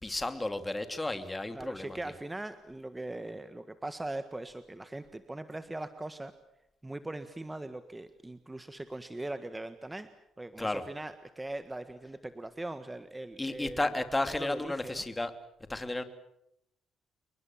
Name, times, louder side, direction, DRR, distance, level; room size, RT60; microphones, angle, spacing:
voice 1, 0.0-2.0 10.6-10.8 13.4-15.3 15.7-16.0, left 2 dB, 15° left, 8 dB, 2.9 m, -33 dB
voice 2, 1.5-6.3 6.8-10.1 10.4-13.8 14.4-15.0, right 2 dB, 15° right, 10 dB, 1.6 m, -40 dB
29.0 x 22.0 x 7.4 m, 0.79 s
cardioid pair, 90°, 0 cm